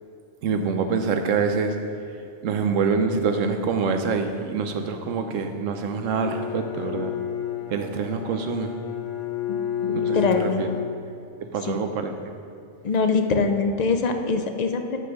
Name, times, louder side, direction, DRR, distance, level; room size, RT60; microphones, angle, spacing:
voice 1, 0.4-1.8 2.4-7.1 7.7-8.7 9.9-10.7 11.5-12.1, right 5 dB, 90° right, 6 dB, 1.1 m, -25 dB
Bowed string instrument, 6.1-11.5, left 9 dB, 75° left, 1.0 m, -31 dB
voice 2, 9.5-10.7 11.6-11.8 12.8-15.0, left 4 dB, 50° left, 6 dB, 0.5 m, -24 dB
7.6 x 5.5 x 6.4 m, 2.6 s
omnidirectional pair, 1.3 m